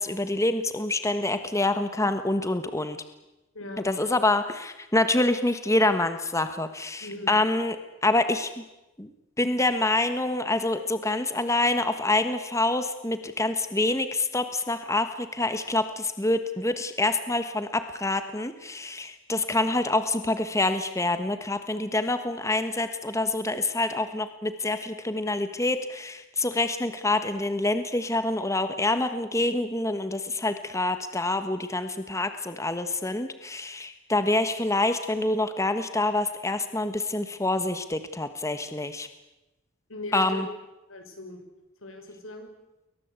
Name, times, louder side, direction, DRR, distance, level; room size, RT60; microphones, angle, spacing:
voice 1, 0.0-3.0 3.8-7.7 8.0-8.6 9.0-9.1 9.4-39.1 40.1-40.5, left 2 dB, 15° left, 9 dB, 1.4 m, -26 dB
voice 2, 3.5-3.9 7.0-7.4 39.9-40.4 40.9-41.4 41.8-42.5, left 2 dB, 85° left, 6 dB, 6.2 m, -38 dB
29.5 x 22.5 x 8.3 m, 1.0 s
head